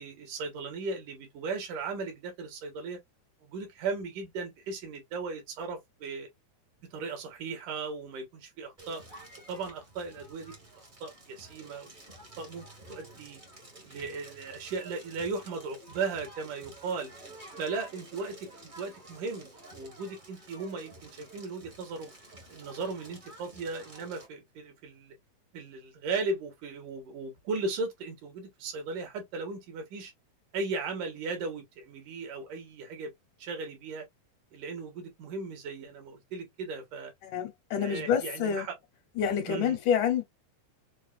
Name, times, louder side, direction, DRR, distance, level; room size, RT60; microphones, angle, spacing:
voice 1, 0.0-3.0 3.4-6.3 6.9-9.0 9.5-10.5 11.0-11.9 12.4-13.4 13.8-17.1 17.6-22.1 22.5-25.1 25.5-30.1 30.5-33.1 33.4-34.1 34.5-37.1 37.8-38.7 39.5-39.8, right 4 dB, 85° right, 2.9 m, -37 dB
Crackle, 8.8-24.3, right 2 dB, 55° right, 0.5 m, -51 dB
voice 2, 37.2-38.7 39.2-40.2, left 8 dB, 80° left, 2.3 m, -28 dB
6.3 x 2.1 x 2.4 m
omnidirectional pair, 3.6 m